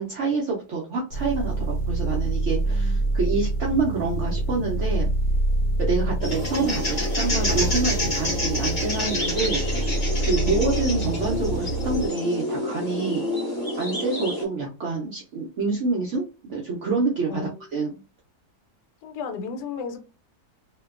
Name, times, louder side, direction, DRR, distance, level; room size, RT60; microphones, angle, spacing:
voice 1, 0.0-5.1 5.8-9.9 10.2-13.3 13.8-17.4 17.7-17.9, right 3 dB, 70° right, 0.7 m, -27 dB
sound 1, 1.1-12.1, right 2 dB, 85° right, 1.2 m, -26 dB
voice 2, 2.6-3.0 10.4-10.6 17.3-17.6 19.0-20.0, left 5 dB, 80° left, 1.1 m, -34 dB
sound 2, 6.2-14.4, left 1 dB, 35° left, 0.8 m, -28 dB
Bowed string instrument, 7.5-11.4, right 1 dB, 10° right, 0.3 m, -43 dB
2.6 x 2.2 x 2.3 m
omnidirectional pair, 1.8 m